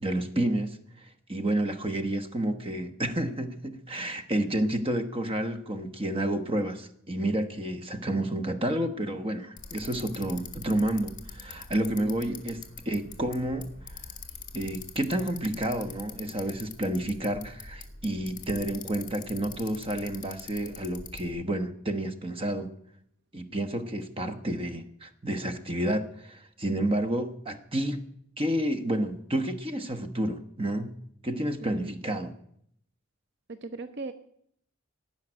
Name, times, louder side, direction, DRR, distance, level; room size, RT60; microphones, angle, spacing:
voice 1, 0.0-12.6 12.8-14.1 14.5-22.7 23.3-28.0 28.4-31.0 31.2-32.3, right 1 dB, 25° right, 8 dB, 1.1 m, -30 dB
Bicycle, 9.6-21.3, left 6 dB, 40° left, 1.8 m, -44 dB
voice 2, 12.0-12.5 31.6-31.9 33.5-34.1, right 3 dB, 55° right, 10 dB, 0.6 m, -38 dB
17.0 x 5.8 x 9.9 m, 0.70 s
head